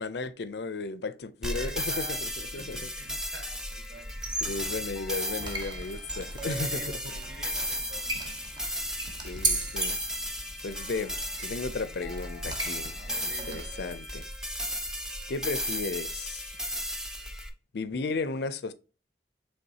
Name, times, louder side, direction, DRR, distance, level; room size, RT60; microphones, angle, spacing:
voice 1, 0.0-2.9 4.4-7.0 9.2-10.0 10.6-13.0 13.2-14.3 15.3-16.5 17.7-18.7, left 3 dB, 65° left, 0.5 m, -35 dB
sound 1, 1.4-17.5, equal, 5° right, 0.6 m, -35 dB
voice 2, 1.5-4.1 6.4-8.3 12.9-13.7, equal, 60° right, 1.9 m, -47 dB
sound 2, 4.1-14.0, right 2 dB, 25° right, 0.9 m, -37 dB
5.4 x 3.5 x 2.7 m
head